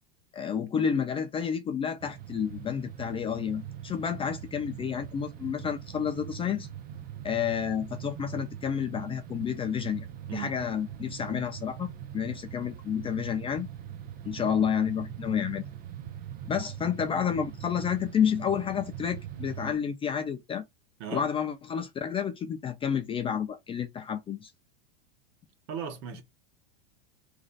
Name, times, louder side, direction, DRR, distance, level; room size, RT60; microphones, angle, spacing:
voice 1, 0.3-6.7 7.2-10.1 10.3-13.7 14.2-15.6 16.4-20.6 21.1-24.5, left 8 dB, 20° left, 0.4 m, -30 dB
sound 1, 2.0-19.7, right 10 dB, 30° right, 0.6 m, -42 dB
voice 2, 25.7-26.2, right 7 dB, 50° right, 1.2 m, -36 dB
3.1 x 2.4 x 4.0 m
supercardioid pair, 125°, 30 cm